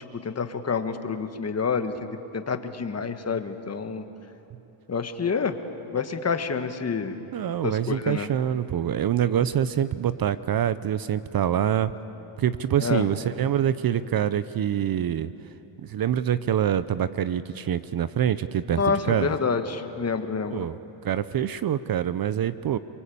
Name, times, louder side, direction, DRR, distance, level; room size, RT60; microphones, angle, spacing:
voice 1, 0.2-1.9 2.3-4.0 4.9-5.6 5.9-7.1 7.6-8.3 12.8-13.1 18.8-20.7, left 5 dB, 30° left, 8 dB, 1.6 m, -28 dB
voice 2, 7.3-11.9 12.4-15.3 15.8-19.3 20.5-20.8 21.0-22.8, right 10 dB, 45° right, 14 dB, 0.7 m, -25 dB
29.5 x 22.5 x 8.6 m, 2.9 s
cardioid pair, 110°, 50 cm